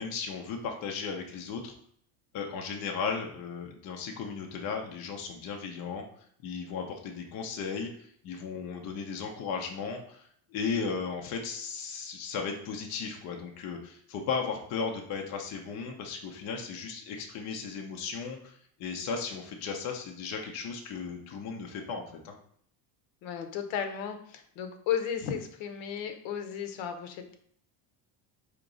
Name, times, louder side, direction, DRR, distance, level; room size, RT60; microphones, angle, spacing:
voice 1, 0.0-1.7 2.3-6.0 6.4-22.3, left 5 dB, 35° left, 2 dB, 0.5 m, -36 dB
voice 2, 23.2-27.4, left 8 dB, 65° left, 7 dB, 0.8 m, -34 dB
4.8 x 2.9 x 3.8 m, 0.63 s
cardioid pair, 175°, 48 cm